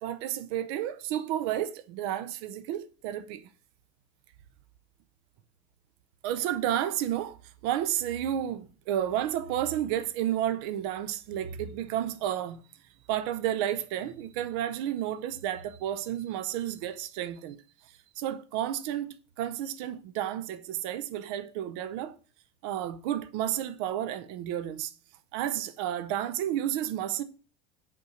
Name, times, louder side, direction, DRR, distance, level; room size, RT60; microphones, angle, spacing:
voice 1, 0.0-3.5 6.2-7.4 7.6-12.6 13.1-17.6 18.2-22.2 22.6-24.9 25.3-27.2, right 11 dB, 75° right, 0.7 m, -31 dB
5.5 x 5.3 x 6.3 m
cardioid pair, 160°, 13 cm